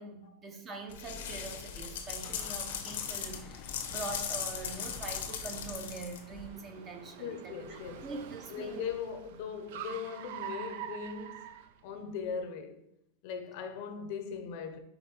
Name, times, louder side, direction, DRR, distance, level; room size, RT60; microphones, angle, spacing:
voice 1, 0.0-8.9, right 3 dB, 20° right, 0.6 m, -43 dB
sound 1, 0.9-6.5, left 7 dB, 85° left, 0.9 m, -38 dB
sound 2, 1.7-7.3, left 8 dB, 30° left, 0.4 m, -53 dB
Car, 2.5-12.3, right 9 dB, 60° right, 0.4 m, -47 dB
voice 2, 7.2-8.1 8.5-11.6 11.8-12.8 13.2-14.8, left 6 dB, 50° left, 0.7 m, -39 dB
5.4 x 4.1 x 4.4 m
supercardioid pair, 170°, 0 cm